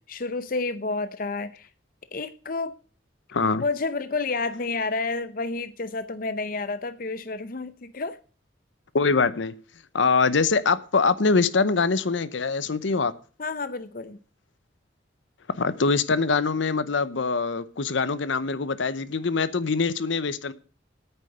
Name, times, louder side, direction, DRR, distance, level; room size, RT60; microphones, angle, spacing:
voice 1, 0.0-1.7 2.1-2.7 3.6-8.2 13.4-14.2, left 3 dB, 45° left, 0.6 m, -30 dB
voice 2, 3.3-3.6 8.9-9.6 9.9-13.1 15.6-20.5, left 4 dB, 75° left, 0.7 m, -23 dB
9.0 x 6.5 x 7.9 m
head